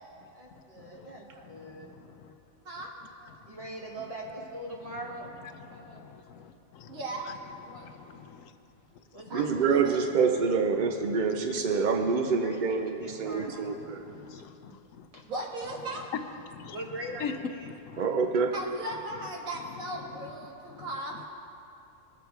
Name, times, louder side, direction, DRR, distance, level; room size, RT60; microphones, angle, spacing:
voice 1, 0.3-2.0 3.5-5.3 9.1-9.7 12.2-13.8 15.1-15.2 16.7-17.7, right 1 dB, 25° right, -1 dB, 1.5 m, -41 dB
voice 2, 1.5-2.3 5.7-7.0 7.7-8.5 13.1-13.3 13.6-15.1 16.5-16.8 17.2-17.3 17.7-18.1 20.7-20.9, left 7 dB, 75° left, 9 dB, 1.0 m, -44 dB
voice 3, 5.7-6.1 6.9-7.9 9.3-9.4 9.7-10.0 14.6-14.8 15.2-16.1 18.5-21.1, right 1 dB, 75° right, -1 dB, 2.0 m, -38 dB
voice 4, 9.3-14.0 18.0-18.5, right 5 dB, 60° right, 4 dB, 0.5 m, -26 dB
20.0 x 7.0 x 4.6 m, 2.7 s
omnidirectional pair, 1.4 m